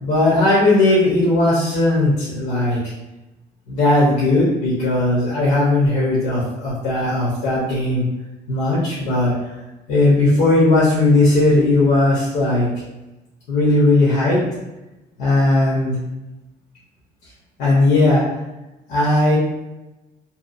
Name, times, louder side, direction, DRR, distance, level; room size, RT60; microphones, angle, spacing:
voice 1, 0.0-2.8 3.7-8.0 8.5-9.3 9.9-12.7 13.5-14.4 15.2-16.0 17.6-18.2 18.9-19.4, left 2 dB, 70° left, -7 dB, 0.8 m, -17 dB
2.8 x 2.2 x 2.4 m, 1.0 s
cardioid pair, 110°, 17 cm